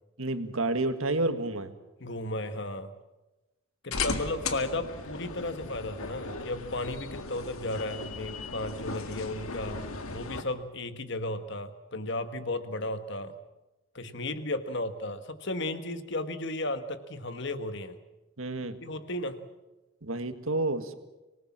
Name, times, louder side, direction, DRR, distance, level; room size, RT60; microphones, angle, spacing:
voice 1, 0.2-1.7 18.4-18.8 20.0-20.9, right 2 dB, 75° right, 9 dB, 1.8 m, -30 dB
voice 2, 2.0-2.9 3.8-13.3 13.9-18.0 18.8-19.4, left 2 dB, 55° left, 9 dB, 1.6 m, -34 dB
sound 1, 3.9-10.4, left 3 dB, 85° left, 1.9 m, -37 dB
25.5 x 19.0 x 7.4 m, 1.1 s
head